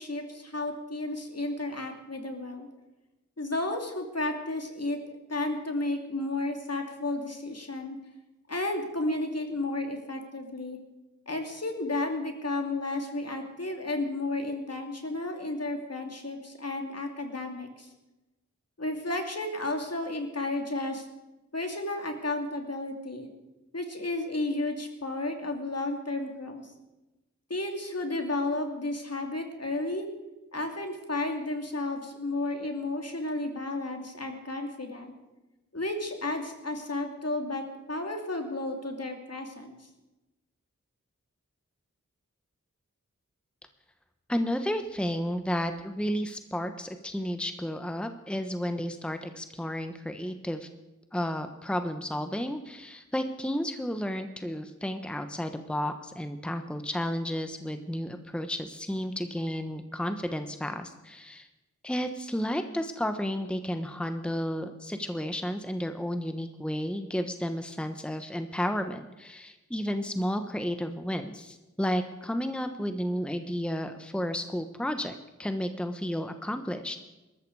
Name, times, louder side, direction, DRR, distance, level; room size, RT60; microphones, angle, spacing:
voice 1, 0.0-2.7 3.4-5.0 5.3-8.0 8.5-10.8 11.3-17.9 18.8-21.1 21.5-23.3 23.7-26.7 27.5-30.1 30.5-35.1 35.7-39.9, left 2 dB, 55° left, 4 dB, 2.8 m, -32 dB
voice 2, 44.3-50.7 51.1-61.5 61.8-77.0, equal, 5° left, 8 dB, 1.1 m, -32 dB
20.0 x 13.5 x 4.8 m, 1.0 s
wide cardioid pair, 55°, 30 cm